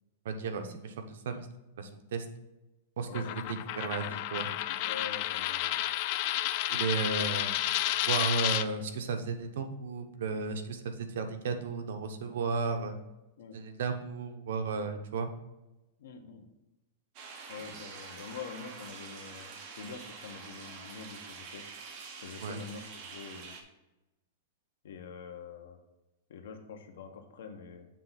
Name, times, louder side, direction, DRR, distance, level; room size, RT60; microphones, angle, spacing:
voice 1, 0.2-1.5 1.8-2.2 3.0-4.5 6.7-7.5 8.1-13.0 13.5-15.3 22.4-22.6, right 4 dB, 70° right, 6 dB, 0.9 m, -34 dB
Coin (dropping), 3.1-8.7, left 14 dB, 40° left, 0.3 m, -31 dB
voice 2, 4.8-5.9 13.4-13.6 16.0-16.5 17.5-21.6 22.2-23.5 24.8-25.8 26.3-27.9, left 6 dB, 75° left, 6 dB, 1.1 m, -45 dB
sound 1, 17.2-23.6, right 5 dB, 35° right, 1.1 m, -46 dB
7.4 x 3.5 x 5.7 m, 0.99 s
supercardioid pair, 170°, 0 cm